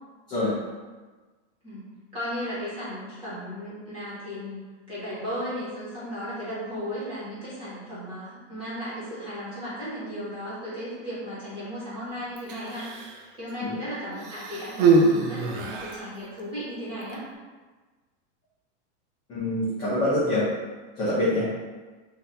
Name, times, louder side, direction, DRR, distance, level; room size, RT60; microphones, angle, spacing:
voice 1, 2.1-12.9 13.4-17.2, equal, 15° right, -11 dB, 1.4 m, -35 dB
Human voice, 12.4-13.3 14.2-16.1 17.0-17.2, right 3 dB, 50° right, 0.5 m, -24 dB
voice 2, 19.3-20.4 21.0-21.5, left 1 dB, 10° left, -11 dB, 0.5 m, -25 dB
4.1 x 2.7 x 2.6 m, 1.3 s
supercardioid pair, 170°, 35 cm